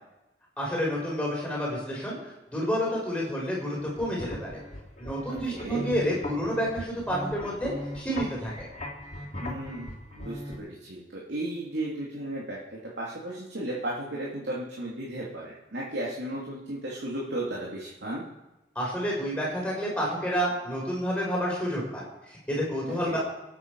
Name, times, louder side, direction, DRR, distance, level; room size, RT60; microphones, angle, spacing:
voice 1, 0.6-2.2 2.5-4.6 5.0-8.7 18.7-23.2, equal, 5° left, -4 dB, 4.6 m, -29 dB
sound 1, 3.9-10.6, left 1 dB, 40° left, 2.6 m, -39 dB
voice 2, 5.3-5.9 9.4-18.2 23.0-23.2, right 1 dB, 85° right, -5 dB, 2.6 m, -35 dB
24.5 x 8.8 x 4.7 m, 0.99 s
head